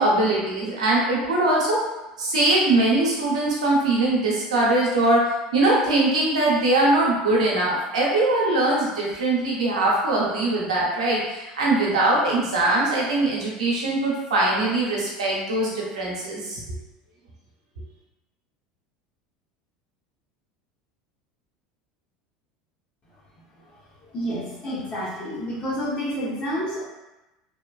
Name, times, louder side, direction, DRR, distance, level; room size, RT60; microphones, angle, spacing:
voice 1, 0.0-1.8 2.2-5.2 5.5-16.6, right 2 dB, 90° right, -4 dB, 0.8 m, -21 dB
voice 2, 24.1-26.8, equal, 35° left, -8 dB, 0.9 m, -29 dB
2.9 x 2.2 x 2.3 m, 1.0 s
hypercardioid pair, 85°, 4 cm